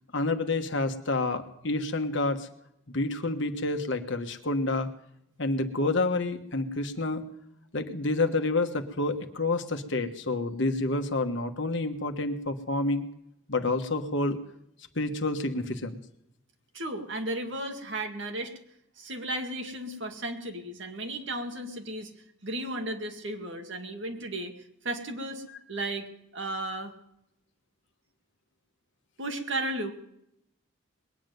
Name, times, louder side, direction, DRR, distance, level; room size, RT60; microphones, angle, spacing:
voice 1, 0.1-2.5 2.9-4.9 5.4-7.3 7.7-13.1 13.5-14.4 14.9-16.0 25.5-25.6, left 2 dB, 55° left, 6 dB, 1.3 m, -28 dB
voice 2, 16.7-18.5 19.0-22.1 22.4-24.5 24.8-25.4 25.7-26.1 26.3-26.9 29.2-29.9, right 1 dB, 55° right, 4 dB, 2.1 m, -34 dB
21.0 x 7.3 x 9.3 m, 0.79 s
head